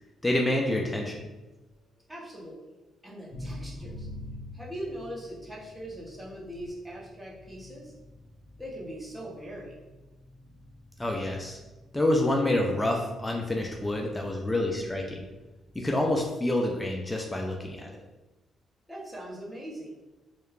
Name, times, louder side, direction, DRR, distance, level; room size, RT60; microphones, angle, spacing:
voice 1, 0.2-1.2 11.0-11.6 11.9-15.2 15.7-17.9, left 1 dB, 15° left, 0 dB, 0.3 m, -27 dB
voice 2, 2.1-2.6 3.0-4.1 4.5-7.9 8.6-9.7 18.9-19.9, right 1 dB, 10° right, -5 dB, 0.8 m, -40 dB
sound 1, 3.3-16.3, left 1 dB, 35° left, 0.8 m, -47 dB
2.9 x 2.1 x 2.4 m, 1.1 s
cardioid pair, 90°, 0 cm